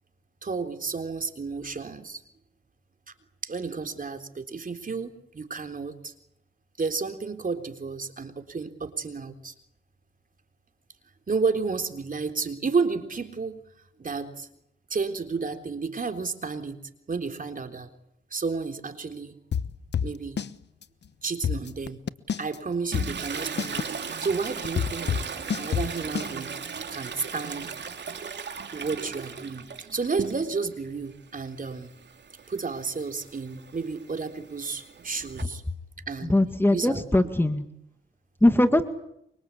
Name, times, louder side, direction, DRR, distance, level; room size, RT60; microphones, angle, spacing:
voice 1, 0.4-2.2 3.4-6.1 6.8-9.5 11.3-13.6 14.0-14.5 14.9-16.8 17.1-17.9 18.3-19.4 20.0-20.4 21.2-22.0 22.4-25.3 25.6-26.5 26.9-27.7 28.7-31.9 32.5-35.6 36.1-36.4 36.7-37.2, right 4 dB, 45° right, 6 dB, 3.7 m, -31 dB
sound 1, 19.5-20.5 20.8-20.9 21.2-22.6 22.9-26.3, left 7 dB, 60° left, 1.1 m, -28 dB
Toilet flush, 22.9-30.7 31.1-35.4, right 6 dB, 60° right, 2.9 m, -37 dB
voice 2, 36.3-37.6 38.4-38.8, left 1 dB, 10° left, 8 dB, 1.9 m, -21 dB
25.5 x 25.0 x 8.5 m, 0.77 s
cardioid pair, 80°, 20 cm